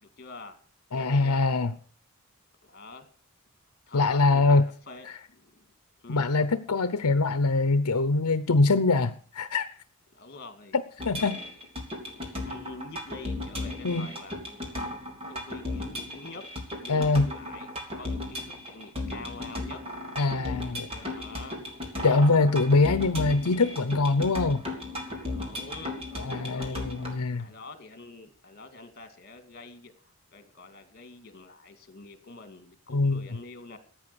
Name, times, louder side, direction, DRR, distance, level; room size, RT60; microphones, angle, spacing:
voice 1, 0.0-0.6 0.9-1.5 2.6-3.1 3.9-5.7 6.0-6.2 10.1-10.8 11.2-11.3 12.0-12.1 12.4-14.4 14.7-14.8 15.3-16.4 16.8-17.7 17.9-19.8 20.6-22.0 23.3-23.6 25.2-27.1 27.4-33.8, left 3 dB, 45° left, 9 dB, 2.3 m, -46 dB
voice 2, 0.9-1.7 3.9-4.7 6.1-9.7 11.0-11.4 13.8-14.1 16.9-17.3 20.2-20.9 22.0-24.6 26.2-27.5 32.9-33.2, left 3 dB, 85° left, 13 dB, 0.8 m, -23 dB
sound 1, 11.0-27.2, left 2 dB, 25° right, 3.4 m, -36 dB
14.5 x 9.0 x 6.9 m, 0.42 s
head